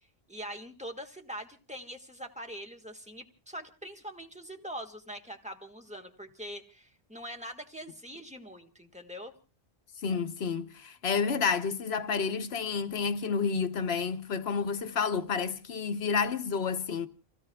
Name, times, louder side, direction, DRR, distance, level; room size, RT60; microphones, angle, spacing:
voice 1, 0.3-9.3, equal, 5° right, 1.5 m, -43 dB
voice 2, 10.0-17.1, left 5 dB, 80° left, 1.2 m, -30 dB
29.5 x 16.5 x 2.3 m
omnidirectional pair, 1.1 m